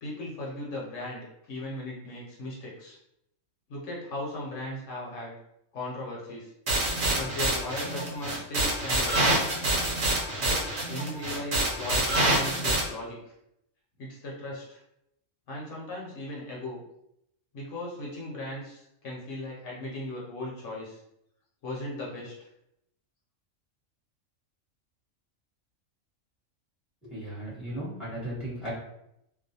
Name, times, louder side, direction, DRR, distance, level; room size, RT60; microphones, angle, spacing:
voice 1, 0.0-3.0 3.7-5.3 5.7-6.5 7.1-9.4 10.4-13.2 14.0-14.8 15.5-16.8 17.5-21.0 21.6-22.5, left 1 dB, 70° left, -4 dB, 0.9 m, -37 dB
sound 1, 6.7-12.8, right 1 dB, 60° right, 1.0 m, -26 dB
voice 2, 27.0-28.7, right 1 dB, ahead, -8 dB, 0.9 m, -36 dB
2.4 x 2.1 x 2.7 m, 0.80 s
omnidirectional pair, 1.4 m